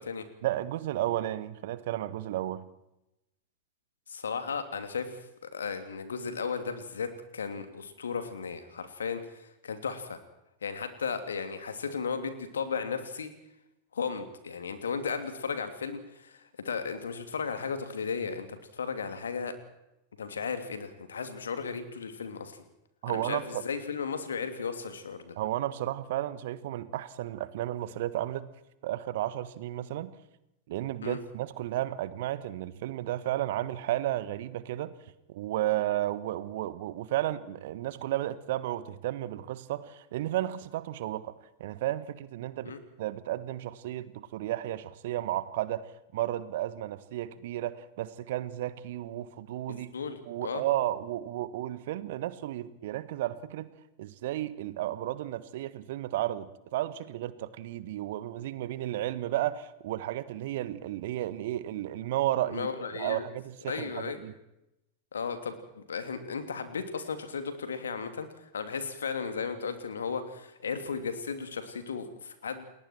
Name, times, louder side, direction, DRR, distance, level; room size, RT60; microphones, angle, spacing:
voice 1, 0.4-2.6 23.0-23.6 25.4-28.5 28.8-30.1 30.7-34.9 35.3-41.3 41.6-42.7 43.0-45.8 46.1-49.9 50.3-53.7 54.0-62.7 62.9-64.3, right 14 dB, 55° right, 15 dB, 1.4 m, -33 dB
voice 2, 4.1-5.2 5.5-10.2 10.6-13.3 13.9-19.5 20.2-22.6 23.1-25.3 31.0-31.2 42.6-42.8 49.9-50.6 62.5-63.2 63.6-64.2 65.1-68.3 68.5-72.6, left 5 dB, 70° left, 9 dB, 2.8 m, -35 dB
29.5 x 21.0 x 4.6 m, 0.87 s
figure-of-eight pair, 90°, 0 cm